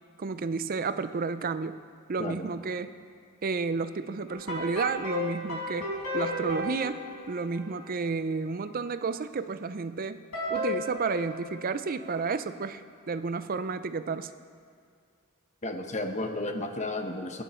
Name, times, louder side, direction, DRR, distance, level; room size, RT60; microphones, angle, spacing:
voice 1, 0.2-1.8 2.1-2.9 3.4-7.0 7.3-10.2 10.5-14.3, right 4 dB, 40° right, 12 dB, 0.5 m, -31 dB
sound 1, 4.3-8.1 10.3-12.2, left 1 dB, 85° left, 4.6 m, -34 dB
voice 2, 15.6-17.4, left 2 dB, 35° left, 5 dB, 1.0 m, -33 dB
21.0 x 10.0 x 4.5 m, 2.1 s
head